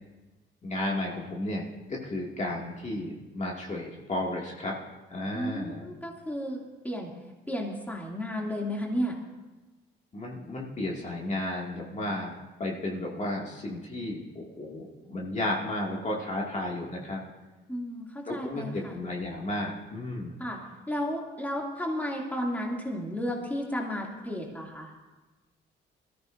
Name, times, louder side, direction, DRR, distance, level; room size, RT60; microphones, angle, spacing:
voice 1, 0.6-4.7 5.1-5.8 10.1-12.3 12.6-17.2 18.3-20.3, left 1 dB, 35° left, -3 dB, 2.3 m, -33 dB
voice 2, 5.3-7.1 7.5-9.2 17.7-18.9 20.4-24.9, equal, 10° left, -2 dB, 2.6 m, -33 dB
20.5 x 14.0 x 2.6 m, 1.2 s
cardioid pair, 90°, 20 cm